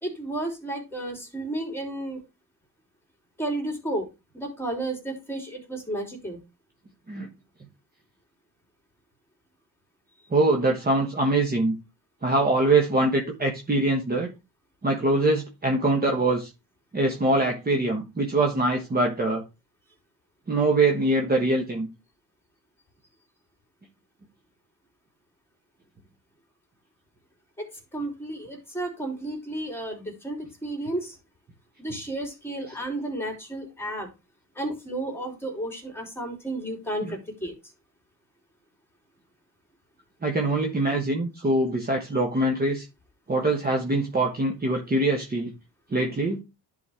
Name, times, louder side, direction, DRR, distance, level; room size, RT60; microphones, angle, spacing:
voice 1, 0.0-2.2 3.4-4.1 4.3-6.4 27.6-27.7 27.9-31.2 31.8-34.1 34.5-37.5, right 1 dB, 5° left, 2 dB, 3.1 m, -32 dB
voice 2, 10.3-11.8 12.2-14.3 14.8-16.5 16.9-19.4 20.5-21.9 32.7-32.8 37.0-37.2 40.2-42.8 43.3-45.5 45.9-46.4, right 2 dB, 25° right, 1 dB, 1.3 m, -23 dB
10.5 x 4.2 x 3.5 m, 0.26 s
cardioid pair, 110°, 41 cm